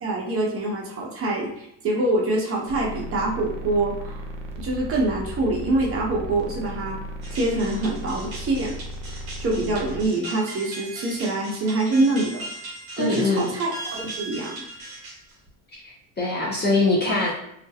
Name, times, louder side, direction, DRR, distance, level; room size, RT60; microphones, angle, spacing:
voice 1, 0.0-4.2 4.6-7.0 7.3-8.8 9.4-12.4 13.0-14.7, right 2 dB, 30° right, -1 dB, 0.7 m, -25 dB
sound 1, 2.7-10.1, equal, 70° right, 0.6 m, -36 dB
mobile phone ringtone, 7.2-15.5, right 2 dB, 50° right, 1.1 m, -38 dB
voice 2, 13.0-13.5 15.8-17.3, left 2 dB, 25° left, -4 dB, 0.4 m, -23 dB
2.4 x 2.1 x 2.7 m, 0.78 s
cardioid pair, 110°, 46 cm